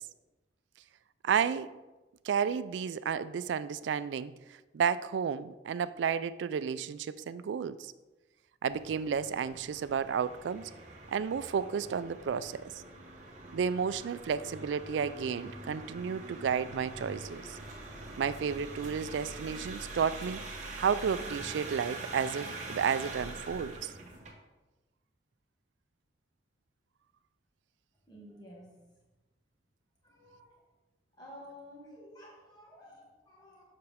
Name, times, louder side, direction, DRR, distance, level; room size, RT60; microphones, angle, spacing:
voice 1, 1.2-1.7 2.2-4.3 4.7-7.9 8.6-10.7 11.1-12.6 13.5-17.6 18.2-20.4 20.8-23.9, right 7 dB, 90° right, 15 dB, 0.3 m, -32 dB
sound 1, 8.7-24.3, right 2 dB, 45° right, 1.3 m, -44 dB
voice 2, 28.1-28.8 30.0-30.7 31.1-33.6, equal, 25° left, -3 dB, 1.8 m, -52 dB
6.9 x 6.5 x 3.5 m, 1.1 s
head